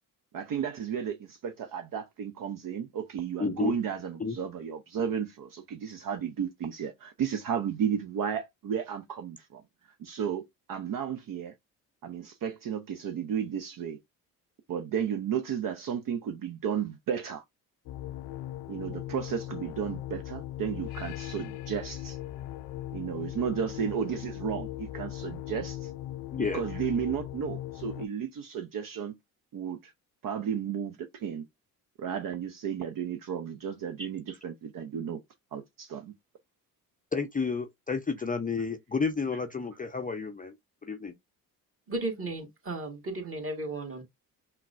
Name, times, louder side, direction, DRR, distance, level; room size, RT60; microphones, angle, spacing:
voice 1, 0.3-10.4 10.7-11.5 12.0-14.0 14.7-17.4 18.7-22.2 22.9-25.9 26.5-29.2 29.5-29.9 30.2-31.5 32.0-35.2 35.5-36.1, right 8 dB, 50° right, 0.7 m, -33 dB
voice 2, 3.4-3.8 4.2-4.4 26.3-26.6 37.1-40.5 40.8-41.1, left 5 dB, 20° left, 0.6 m, -31 dB
sound 1, 17.9-28.1, left 13 dB, 70° left, 0.5 m, -39 dB
voice 3, 41.9-44.0, right 2 dB, 30° right, 1.9 m, -34 dB
5.8 x 2.2 x 2.5 m
hypercardioid pair, 55°, 43 cm